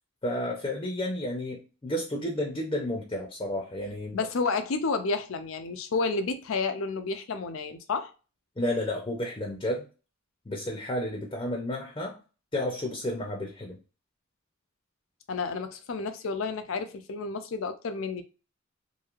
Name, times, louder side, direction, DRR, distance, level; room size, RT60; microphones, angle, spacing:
voice 1, 0.2-4.2 8.6-9.9 10.5-12.2 12.5-13.8, left 1 dB, 25° left, 0.5 m, -31 dB
voice 2, 4.1-8.1 15.3-18.2, left 4 dB, 85° left, 0.5 m, -30 dB
3.0 x 2.7 x 2.4 m
head